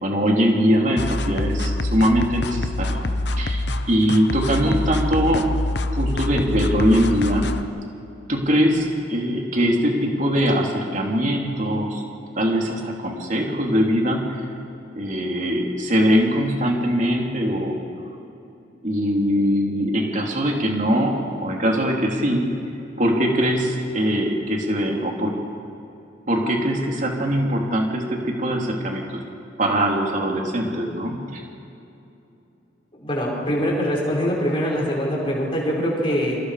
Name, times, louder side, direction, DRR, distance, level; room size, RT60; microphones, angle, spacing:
voice 1, 0.0-3.0 3.4-5.5 5.9-7.5 8.3-12.0 12.4-14.4 14.9-17.8 18.8-22.5 23.0-25.3 26.3-29.0 29.6-31.4, equal, 40° right, 0 dB, 3.2 m, -22 dB
sound 1, 1.0-7.6, left 2 dB, 60° left, 0.9 m, -25 dB
voice 2, 33.0-36.4, equal, 30° left, -3 dB, 5.6 m, -23 dB
28.0 x 25.5 x 5.0 m, 2.8 s
head